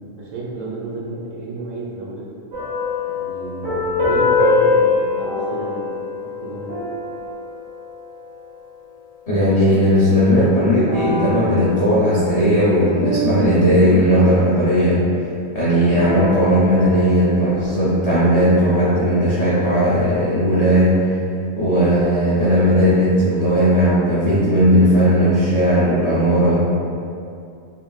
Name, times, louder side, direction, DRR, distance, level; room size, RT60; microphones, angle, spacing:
voice 1, 0.2-2.5 3.0-6.7, right 2 dB, 65° right, -6 dB, 0.9 m, -31 dB
sound 1, 2.5-8.5 10.8-14.6 15.9-18.6, left 2 dB, 40° right, 1.3 m, -24 dB
voice 2, 9.3-15.0 15.5-20.9 21.6-26.6, equal, 55° left, -11 dB, 0.4 m, -16 dB
3.8 x 2.3 x 2.3 m, 2.5 s
omnidirectional pair, 1.5 m